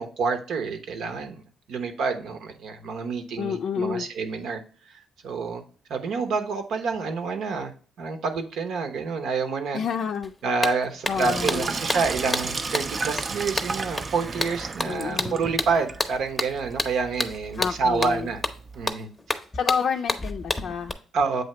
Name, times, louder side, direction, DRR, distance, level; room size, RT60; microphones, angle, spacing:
voice 1, 0.0-1.4 1.7-4.6 4.9-5.6 5.9-9.8 10.4-18.4 18.7-19.1 21.1-21.4, right 4 dB, 75° right, 0.9 m, -28 dB
voice 2, 3.4-4.1 9.7-10.3 11.1-11.7 14.8-15.4 17.6-18.3 19.5-21.0, left 6 dB, 65° left, 0.4 m, -29 dB
sound 1, 10.2-10.3 10.6-20.9, left 2 dB, 20° left, 0.7 m, -30 dB
Sink (filling or washing), 11.0-18.9, right 4 dB, 35° right, 0.4 m, -34 dB
7.9 x 2.8 x 4.3 m
cardioid pair, 90°, 0 cm